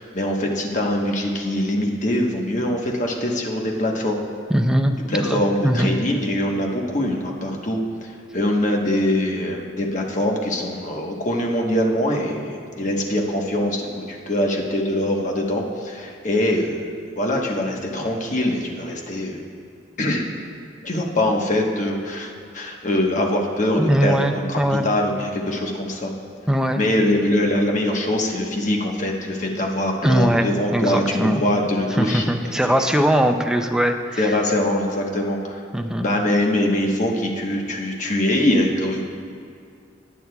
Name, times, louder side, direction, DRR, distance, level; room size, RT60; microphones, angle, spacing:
voice 1, 0.0-4.2 5.1-16.9 17.2-19.4 20.0-20.3 20.8-26.1 26.8-32.2 34.2-35.6 36.0-39.0, left 1 dB, 45° left, 0 dB, 1.2 m, -23 dB
voice 2, 4.5-5.9 23.8-24.9 26.5-26.8 30.0-31.4 32.0-34.4 35.7-36.1, equal, 5° right, 5 dB, 0.5 m, -21 dB
19.0 x 8.7 x 2.3 m, 2.3 s
head